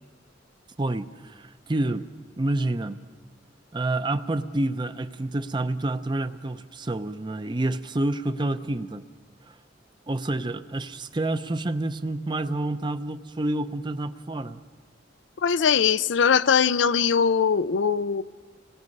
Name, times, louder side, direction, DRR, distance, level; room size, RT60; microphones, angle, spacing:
voice 1, 0.8-2.1 2.4-3.0 3.7-9.0 9.5-9.6 10.1-14.6, right 2 dB, 25° right, 11 dB, 0.6 m, -28 dB
voice 2, 15.4-18.2, left 6 dB, 80° left, 14 dB, 0.5 m, -21 dB
27.0 x 19.0 x 5.4 m, 1.5 s
head